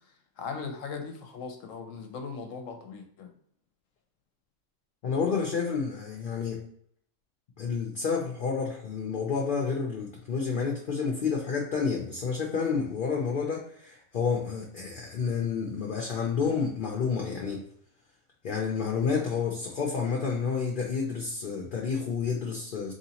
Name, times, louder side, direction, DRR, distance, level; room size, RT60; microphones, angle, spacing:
voice 1, 0.4-3.3, left 5 dB, 70° left, 5 dB, 0.9 m, -38 dB
voice 2, 5.0-6.6 7.6-17.6 18.4-22.9, left 5 dB, 55° left, -1 dB, 0.6 m, -30 dB
3.9 x 3.1 x 2.8 m, 0.65 s
omnidirectional pair, 1.5 m